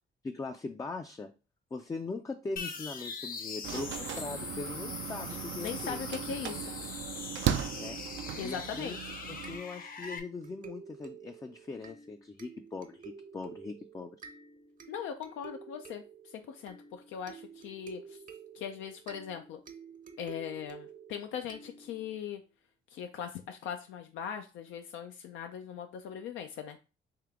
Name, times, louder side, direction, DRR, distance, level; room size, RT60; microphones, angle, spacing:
voice 1, 0.2-1.3 1.7-6.0 7.7-8.0 8.4-9.0 9.3-14.1, left 3 dB, 15° left, 6 dB, 0.3 m, -40 dB
sound 1, 2.6-10.2, left 5 dB, 45° left, 0.7 m, -42 dB
sound 2, 3.6-9.6, right 10 dB, 70° right, 0.4 m, -37 dB
voice 2, 5.6-6.7 8.4-9.0 14.9-16.0 16.3-18.2 18.5-19.6 20.2-22.4 22.9-26.8, left 8 dB, 80° left, 6 dB, 0.4 m, -40 dB
sound 3, 9.4-22.2, right 6 dB, 40° right, 0.7 m, -51 dB
3.7 x 2.8 x 3.5 m, 0.32 s
cardioid pair, 90°, 20 cm